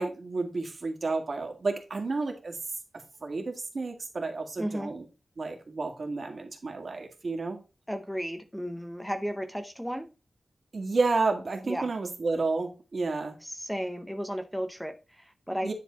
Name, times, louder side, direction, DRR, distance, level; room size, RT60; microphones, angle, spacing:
voice 1, 0.0-2.6 3.2-5.0 5.4-7.6 10.7-13.4 15.6-15.7, right 3 dB, 55° right, 2.0 m, -31 dB
voice 2, 4.6-4.9 7.9-10.1 11.7-11.9 13.4-15.7, equal, ahead, 0.8 m, -34 dB
10.0 x 4.2 x 4.0 m
wide cardioid pair, 130°, 0 cm